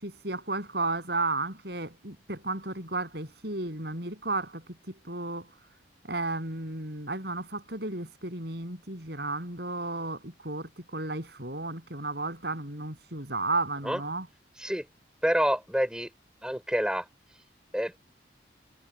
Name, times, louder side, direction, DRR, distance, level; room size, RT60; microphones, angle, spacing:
voice 1, 0.0-5.5 6.0-14.3, right 2 dB, 60° right, 7.9 m, -33 dB
voice 2, 15.2-16.1 16.4-17.1 17.7-18.0, equal, 5° right, 3.8 m, -27 dB
head